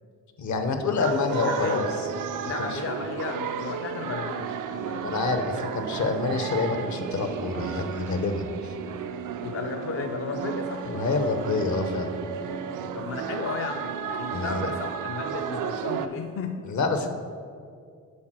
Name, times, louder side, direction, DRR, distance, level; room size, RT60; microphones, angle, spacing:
voice 1, 0.4-1.9 2.7-2.8 5.0-8.7 10.8-12.1 14.3-14.7 16.7-17.1, left 4 dB, 65° left, 7 dB, 0.9 m, -27 dB
voice 2, 1.0-1.9 2.4-5.2 9.4-10.8 12.9-16.6, left 5 dB, 45° left, 4 dB, 0.5 m, -34 dB
sound 1, 1.0-16.1, right 7 dB, 80° right, 0.5 m, -33 dB
8.4 x 4.2 x 6.1 m, 2.2 s
cardioid pair, 110°, 31 cm